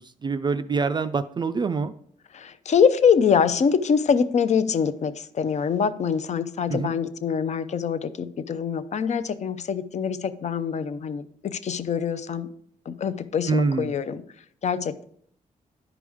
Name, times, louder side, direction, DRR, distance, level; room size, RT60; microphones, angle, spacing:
voice 1, 0.0-1.9 6.7-7.0 13.5-13.9, right 4 dB, 30° right, 10 dB, 0.3 m, -26 dB
voice 2, 2.3-12.5 12.9-14.2 14.6-15.0, left 6 dB, 55° left, 13 dB, 0.5 m, -24 dB
11.0 x 4.9 x 3.5 m, 0.65 s
cardioid pair, 105°, 14 cm